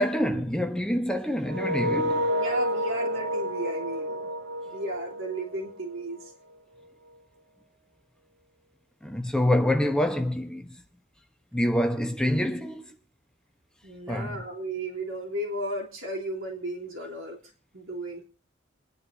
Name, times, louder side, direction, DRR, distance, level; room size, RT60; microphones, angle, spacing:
voice 1, 0.0-2.3 9.0-10.7 11.5-12.9 14.1-14.4, left 1 dB, 5° left, 1.0 m, -26 dB
sound 1, 1.5-6.3, equal, 60° right, 0.7 m, -30 dB
voice 2, 2.3-4.3 4.7-6.3 13.8-18.2, right 1 dB, 80° right, 3.3 m, -34 dB
27.5 x 10.0 x 2.8 m
head